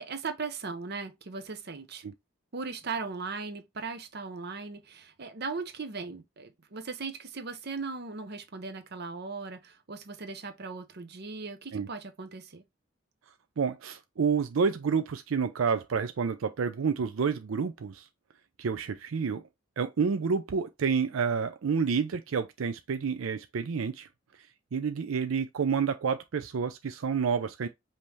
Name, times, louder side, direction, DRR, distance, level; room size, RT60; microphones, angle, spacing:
voice 1, 0.0-2.0 2.5-12.6, right 4 dB, 55° right, 0.8 m, -38 dB
voice 2, 13.6-18.0 18.6-19.4 19.8-24.1 24.7-27.7, right 6 dB, 90° right, 0.5 m, -29 dB
5.4 x 2.8 x 3.0 m
head